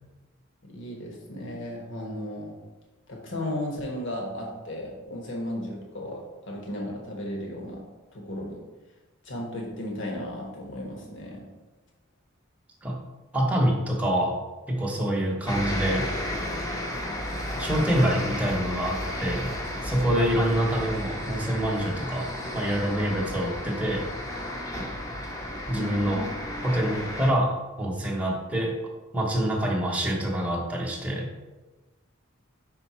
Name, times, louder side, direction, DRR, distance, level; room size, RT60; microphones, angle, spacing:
voice 1, 0.6-2.5 3.1-7.8 8.1-8.6 9.2-11.5 25.7-26.2, left 1 dB, 60° left, -1 dB, 1.3 m, -35 dB
voice 2, 13.3-14.3 14.7-16.1 17.6-19.5 19.8-24.0 25.7-26.3 26.6-28.7 29.1-31.3, right 1 dB, 5° right, -2 dB, 0.9 m, -26 dB
sound 1, 15.5-27.3, left 1 dB, 15° left, 0.8 m, -33 dB
5.2 x 4.4 x 4.3 m, 1.2 s
head